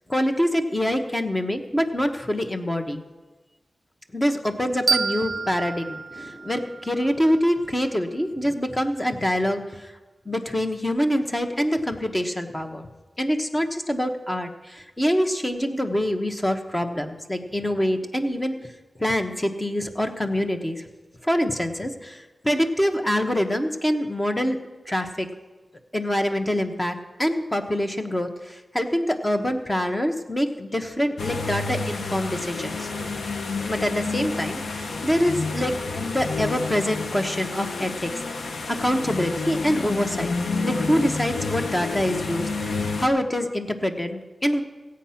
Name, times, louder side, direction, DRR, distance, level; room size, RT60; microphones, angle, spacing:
voice 1, 0.1-3.0 4.1-9.9 10.2-12.9 13.2-18.6 19.0-20.8 21.2-24.6 24.9-25.3 25.9-32.9 33.6-38.1 38.4-40.3 40.6-44.6, equal, 15° left, 6 dB, 1.1 m, -25 dB
sound 1, 4.9-7.7, right 5 dB, 65° right, 0.4 m, -29 dB
sound 2, 31.2-43.1, left 3 dB, 85° left, 0.9 m, -29 dB
16.0 x 8.6 x 5.8 m, 1.2 s
wide cardioid pair, 95°, 0 cm